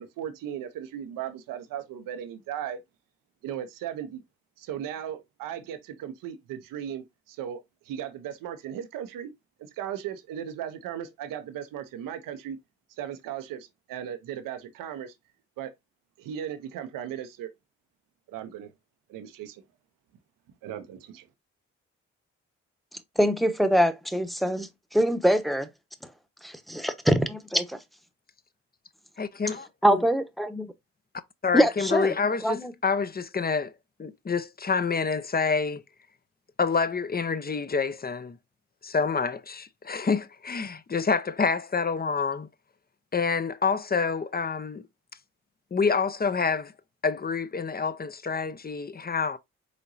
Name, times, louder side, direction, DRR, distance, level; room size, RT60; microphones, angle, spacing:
voice 1, 0.0-2.8 3.4-4.2 4.6-9.3 9.6-12.6 13.0-15.1 15.6-15.7 16.2-17.5 18.3-18.7 19.1-19.6 20.6-21.3, right 10 dB, 80° right, 0.8 m, -37 dB
voice 2, 23.2-25.7 26.4-27.8 29.8-30.7 31.5-32.1 32.4-32.7, equal, ahead, 1.0 m, -24 dB
voice 3, 29.2-30.0 31.4-33.7 34.0-35.8 36.6-38.4 38.8-42.5 43.1-44.8 45.7-46.7 47.0-49.4, left 5 dB, 30° left, 0.7 m, -27 dB
5.1 x 3.8 x 2.6 m
hypercardioid pair, 40°, 32 cm